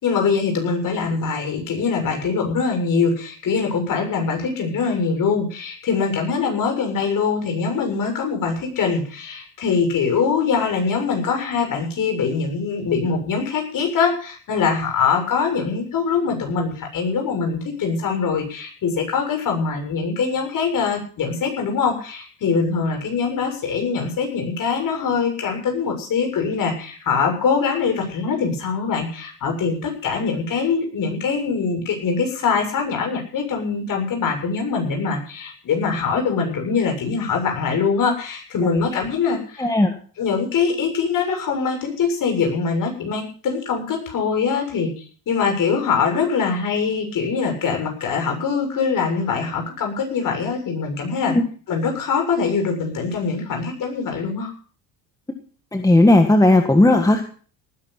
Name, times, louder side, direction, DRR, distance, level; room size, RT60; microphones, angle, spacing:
voice 1, 0.0-39.7 40.2-51.4 51.7-54.5, left 5 dB, 50° left, 4 dB, 7.2 m, -23 dB
voice 2, 39.6-39.9 51.3-51.4 55.7-57.2, left 1 dB, 10° left, 5 dB, 1.7 m, -15 dB
18.5 x 10.5 x 5.9 m, 0.42 s
cardioid pair, 125°, 43 cm